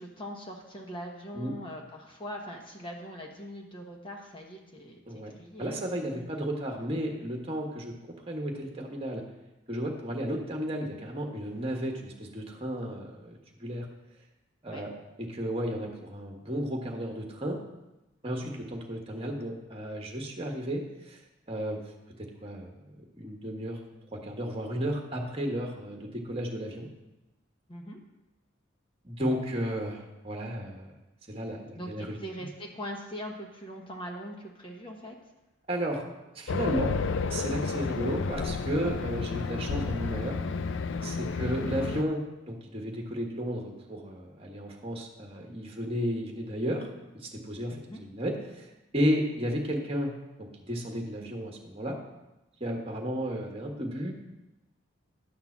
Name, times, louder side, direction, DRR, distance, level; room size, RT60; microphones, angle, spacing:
voice 1, 0.0-6.2 14.7-14.8 18.4-18.8 27.7-28.0 31.7-35.1 41.3-41.5 47.7-48.0, equal, 25° left, 0 dB, 1.1 m, -42 dB
voice 2, 5.6-7.9 8.3-9.2 9.7-13.8 14.6-14.9 15.2-17.6 18.2-21.2 21.5-21.8 22.2-23.8 24.1-26.9 29.0-30.9 31.3-32.5 35.7-36.0 36.3-37.0 37.3-40.4 41.0-46.9 47.1-50.1 50.4-52.0 52.6-54.1, equal, 30° right, 1 dB, 1.4 m, -33 dB
Race car auto racing, 36.5-42.0, left 4 dB, 65° left, 0.4 m, -31 dB
10.5 x 3.9 x 7.2 m, 1.0 s
head